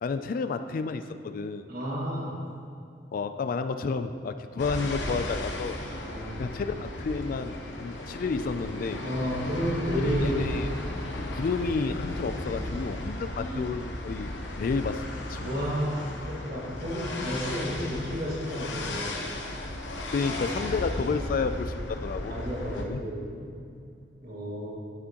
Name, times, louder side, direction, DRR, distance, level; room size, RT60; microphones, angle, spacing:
voice 1, 0.0-1.7 3.1-5.8 6.4-9.0 10.0-10.7 11.3-14.3 14.6-15.5 20.1-22.3 22.7-23.0, left 4 dB, 50° left, 10 dB, 0.3 m, -31 dB
voice 2, 1.7-2.4 5.8-6.5 9.0-10.5 13.4-13.7 15.4-19.2 21.1-21.5 22.2-23.8 24.2-24.7, equal, 55° right, -5 dB, 2.0 m, -32 dB
sound 1, 4.6-22.8, left 1 dB, 90° left, 0.9 m, -35 dB
11.0 x 6.1 x 2.9 m, 2.5 s
head